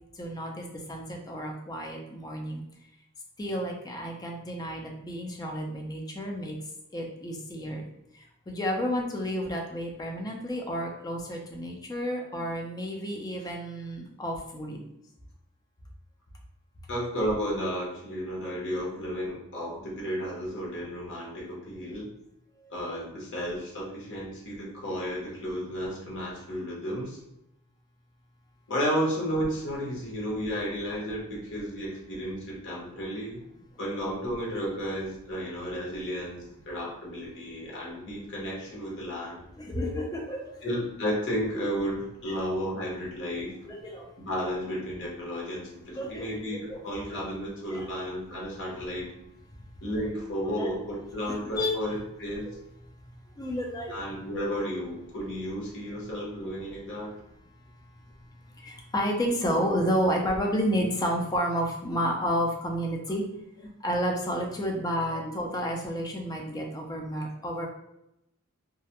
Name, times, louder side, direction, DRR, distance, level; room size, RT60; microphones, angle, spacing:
voice 1, 0.2-2.6 3.4-6.5 6.9-7.8 8.5-14.8 39.6-40.5 43.6-44.1 46.0-46.2 46.7-46.8 47.7-47.9 50.6-50.7 51.3-51.8 53.4-54.0 58.6-63.2 63.8-67.7, equal, 15° left, 1 dB, 0.4 m, -31 dB
voice 2, 16.9-22.1 22.7-27.2 28.7-33.4 33.8-36.4 36.7-39.4 40.6-43.5 44.2-49.0 49.8-52.5 53.9-57.1 65.1-65.2, equal, 55° left, -4 dB, 0.9 m, -33 dB
2.3 x 2.1 x 2.8 m, 0.84 s
head